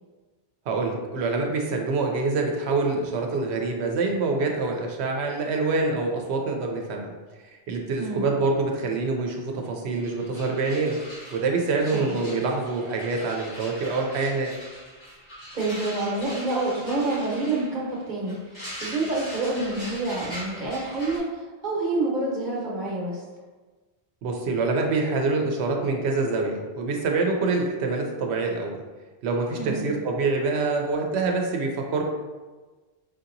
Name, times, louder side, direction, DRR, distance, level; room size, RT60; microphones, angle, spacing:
voice 1, 0.7-7.1 7.4-11.0 11.3-14.5 24.2-28.8 29.2-32.0, right 3 dB, 90° right, 2 dB, 0.9 m, -26 dB
sound 1, 9.6-9.7 9.9-21.2, equal, 55° left, 1.8 m, -41 dB
voice 2, 15.5-23.2 29.6-29.8, right 2 dB, 50° right, -4 dB, 1.0 m, -28 dB
4.9 x 2.8 x 2.5 m, 1.3 s
omnidirectional pair, 1.1 m